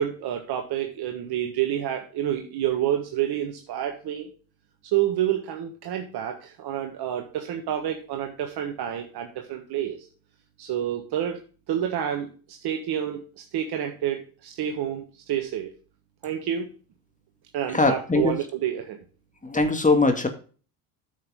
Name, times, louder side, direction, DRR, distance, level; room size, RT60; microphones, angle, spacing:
voice 1, 0.0-4.3 4.8-10.1 10.6-11.4 11.7-15.7 16.2-16.7 17.5-19.0, right 10 dB, 55° right, 4 dB, 1.5 m, -28 dB
voice 2, 17.7-18.4 19.4-20.3, left 3 dB, 15° left, 6 dB, 2.1 m, -21 dB
9.5 x 6.6 x 3.6 m, 0.38 s
hypercardioid pair, 70°, 46 cm